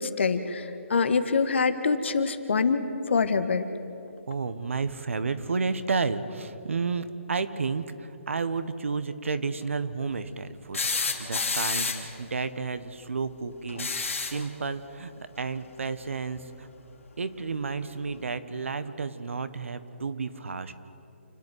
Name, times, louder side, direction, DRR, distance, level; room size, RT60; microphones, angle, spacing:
voice 1, 0.0-3.7, left 4 dB, 60° left, 10 dB, 1.6 m, -25 dB
voice 2, 4.3-13.9 14.2-16.7 17.2-20.7, right 4 dB, 75° right, 12 dB, 1.4 m, -31 dB
sound 1, 10.7-12.2 13.7-14.5 16.1-16.2 17.7-17.8, left 4 dB, 80° left, 2.9 m, -29 dB
29.0 x 9.7 x 9.4 m, 2.9 s
hypercardioid pair, 160°, 7 cm